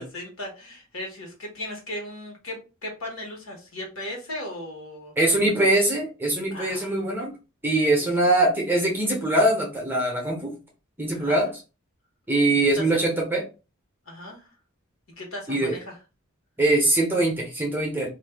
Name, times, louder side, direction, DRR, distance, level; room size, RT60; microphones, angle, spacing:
voice 1, 0.0-5.1 6.5-6.9 8.0-8.1 11.1-11.4 12.7-13.0 14.1-14.5 15.2-16.0, left 1 dB, 70° left, 0 dB, 1.2 m, -37 dB
voice 2, 5.2-7.3 7.6-10.5 11.0-11.5 12.3-13.4 15.5-15.8 16.6-18.1, right 1 dB, 10° right, -1 dB, 0.7 m, -22 dB
2.5 x 2.3 x 3.4 m, 0.31 s
head